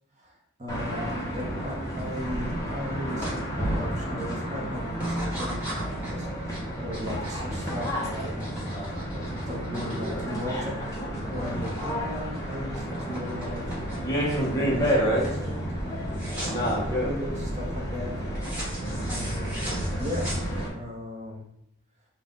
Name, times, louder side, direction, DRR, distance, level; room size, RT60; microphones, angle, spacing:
voice 1, 0.2-6.3 6.8-8.4 9.1-10.7 11.2-13.6 14.3-16.2 16.9-18.2 19.0-20.4 20.7-21.4, left 1 dB, 30° right, -1 dB, 0.9 m, -37 dB
sound 1, 0.7-20.7, equal, 15° left, 0.8 m, -30 dB
sound 2, 3.2-3.4 3.8-4.3 4.9-11.0 11.2-12.0 12.3-14.2 14.7-15.0 15.2-15.5 16.1-16.7 18.4-20.9, equal, 5° right, 1.3 m, -39 dB
5.5 x 2.4 x 3.6 m, 0.80 s
head